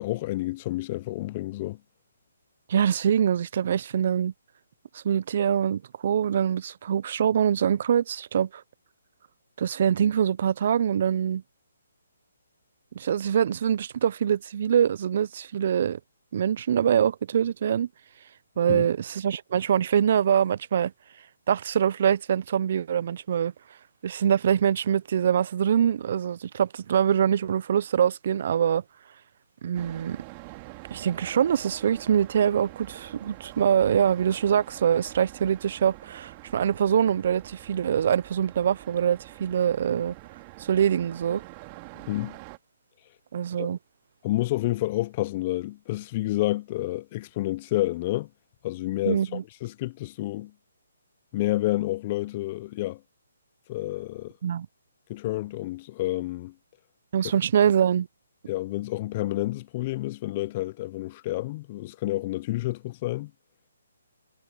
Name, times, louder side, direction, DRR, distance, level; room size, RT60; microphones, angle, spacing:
voice 1, 0.0-1.8 18.7-18.9 42.0-42.4 43.6-43.7 44.2-48.3 48.6-50.5 51.3-53.0 53.7-54.3 55.1-56.5 58.5-63.3, left 17 dB, 35° left, 0.8 m, -29 dB
voice 2, 2.7-4.3 4.9-8.6 9.6-11.4 12.9-16.0 16.3-17.9 18.6-20.9 21.5-23.5 24.0-28.8 29.6-30.2 30.9-40.1 40.6-41.4 43.3-43.8 49.1-49.4 54.4-54.7 57.1-58.1, right 9 dB, 50° right, 0.9 m, -24 dB
sound 1, 29.7-42.6, right 28 dB, 30° right, 3.0 m, -46 dB
figure-of-eight pair, 140°, 0 cm